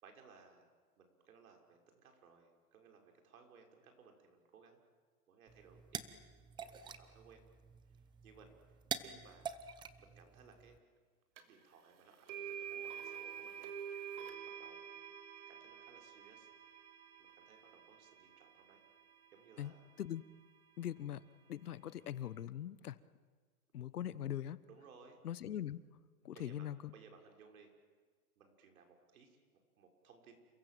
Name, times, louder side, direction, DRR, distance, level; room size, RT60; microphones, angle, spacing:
voice 1, 0.0-4.8 5.3-6.0 6.5-7.4 7.8-9.6 10.0-10.8 11.4-13.7 14.1-15.0 15.5-16.8 17.2-18.8 19.3-19.8 24.7-25.2 26.2-26.7 26.9-27.7 28.4-29.4 29.8-30.4, right 5 dB, 65° right, 4 dB, 6.0 m, -62 dB
sound 1, 5.5-10.8, right 7 dB, 10° right, 0.7 m, -47 dB
sound 2, 11.4-11.5 12.3-20.3, right 8 dB, 50° right, 3.2 m, -49 dB
voice 2, 19.6-20.2 20.8-21.2 21.5-23.0 23.7-24.6 25.2-25.8 26.2-26.9, left 11 dB, 80° left, 17 dB, 1.2 m, -42 dB
29.0 x 26.0 x 7.8 m, 1.5 s
hypercardioid pair, 145°, 45 cm